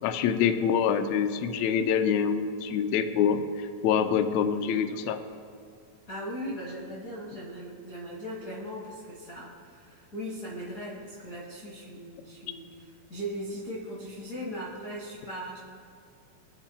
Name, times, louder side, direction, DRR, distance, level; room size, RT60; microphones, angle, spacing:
voice 1, 0.0-5.2, left 7 dB, 90° left, 7 dB, 1.6 m, -26 dB
voice 2, 6.1-15.6, equal, 40° left, -4 dB, 1.2 m, -39 dB
24.5 x 8.6 x 2.3 m, 2.4 s
omnidirectional pair, 3.9 m